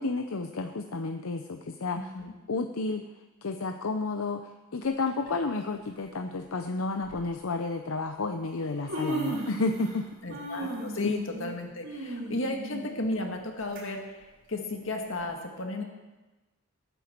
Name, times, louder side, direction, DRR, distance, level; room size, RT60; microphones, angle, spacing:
voice 1, 0.0-2.1 2.5-3.0 3.4-10.1 11.0-11.1, left 3 dB, 80° left, 6 dB, 0.7 m, -31 dB
voice 2, 1.9-2.3 10.2-15.8, left 2 dB, 65° left, 3 dB, 1.9 m, -34 dB
Human voice, 5.1-5.3 6.3-6.4 7.0-7.2 8.2-8.3 8.6-10.0 10.3-13.8 14.2-14.3 15.2-15.3, right 1 dB, 60° right, 4.0 m, -36 dB
21.0 x 9.2 x 4.5 m, 1.2 s
head